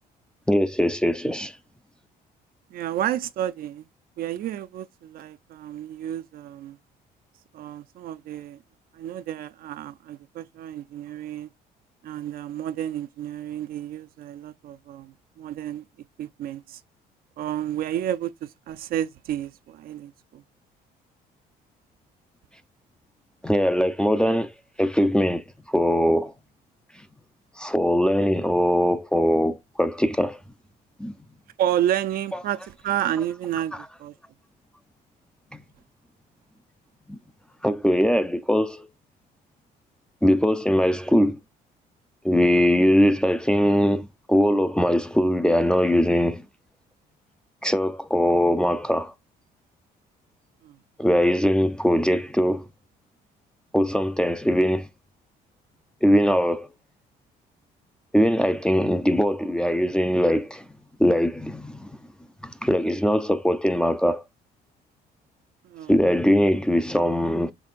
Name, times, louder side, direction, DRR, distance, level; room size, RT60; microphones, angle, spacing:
voice 1, 0.5-1.5 23.4-24.5 24.8-26.3 27.6-30.4 31.0-31.1 35.5-35.6 37.1-37.2 37.6-38.9 40.2-41.4 42.2-46.4 47.6-49.1 51.0-52.7 53.7-54.9 56.0-56.7 58.1-60.6 61.0-61.9 62.4-64.2 65.9-67.5, equal, 5° left, 0.4 m, -21 dB
voice 2, 2.7-3.8 4.2-6.8 7.5-8.6 8.9-11.5 12.0-15.8 16.2-16.8 17.4-20.4 31.6-34.1 42.5-42.7 50.6-50.8 65.6-66.0, right 11 dB, 60° right, 0.4 m, -31 dB
6.1 x 3.4 x 2.4 m
cardioid pair, 110°, 17 cm